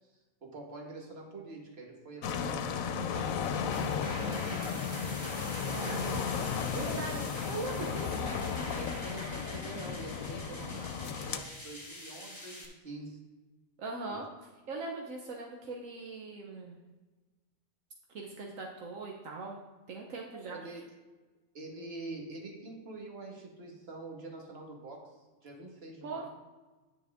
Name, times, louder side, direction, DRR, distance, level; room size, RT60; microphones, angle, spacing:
voice 1, 0.4-4.6 6.7-7.2 8.0-8.1 8.7-13.2 14.1-14.2 20.3-20.8 21.5-26.3, right 2 dB, 50° right, 0 dB, 1.8 m, -46 dB
sound 1, 2.2-11.4, left 6 dB, 85° left, 1.1 m, -34 dB
sound 2, 3.1-12.6, left 1 dB, 20° left, 2.0 m, -44 dB
voice 2, 5.7-6.2 6.7-7.1 7.5-8.2 13.8-14.3 14.7-16.8 18.1-19.6 19.9-20.7 26.0-26.2, right 3 dB, 80° right, 0 dB, 1.3 m, -40 dB
9.8 x 7.2 x 3.6 m, 1.2 s
omnidirectional pair, 1.4 m